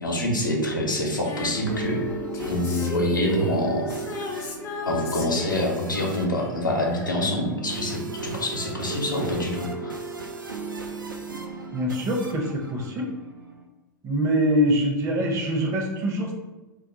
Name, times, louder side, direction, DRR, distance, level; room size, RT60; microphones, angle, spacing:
voice 1, 0.0-2.0 2.5-4.0 4.9-10.0, left 1 dB, 90° left, -2 dB, 0.7 m, -26 dB
sound 1, 1.0-13.6, right 3 dB, 85° right, 0.4 m, -36 dB
Female singing, 1.2-8.2 9.3-9.4, left 3 dB, 30° left, 0.5 m, -36 dB
voice 2, 11.7-13.1 14.0-16.3, equal, 30° right, 1 dB, 0.6 m, -24 dB
2.4 x 2.3 x 3.9 m, 1.1 s
figure-of-eight pair, 95°, 10 cm